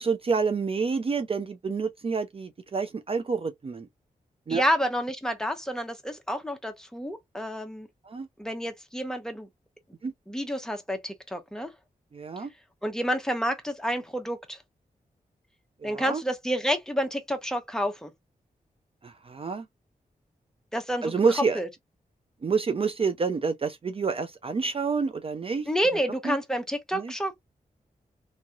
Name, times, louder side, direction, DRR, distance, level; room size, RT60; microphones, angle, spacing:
voice 1, 0.0-3.9 4.5-4.6 8.1-8.3 10.0-10.1 12.1-12.5 15.8-16.2 19.0-19.7 21.0-21.6 22.4-25.7 26.2-26.4 26.9-27.1, right 5 dB, 40° right, 0.4 m, -28 dB
voice 2, 4.5-7.9 8.4-9.5 10.3-11.7 12.8-14.6 15.8-18.1 20.7-21.2 21.5-21.7 25.7-27.3, equal, 5° left, 0.9 m, -29 dB
3.0 x 2.7 x 2.4 m
wide cardioid pair, 90°, 15 cm